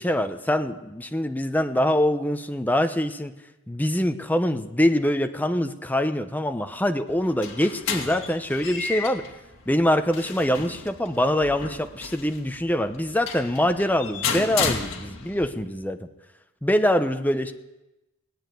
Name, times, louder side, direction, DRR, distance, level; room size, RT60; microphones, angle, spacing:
voice 1, 0.0-3.3 3.7-9.2 9.7-16.0 16.6-17.5, left 1 dB, 10° left, 7 dB, 0.8 m, -24 dB
sound 1, 7.1-15.5, left 5 dB, 60° left, 2.3 m, -33 dB
18.0 x 8.8 x 9.2 m, 0.99 s
head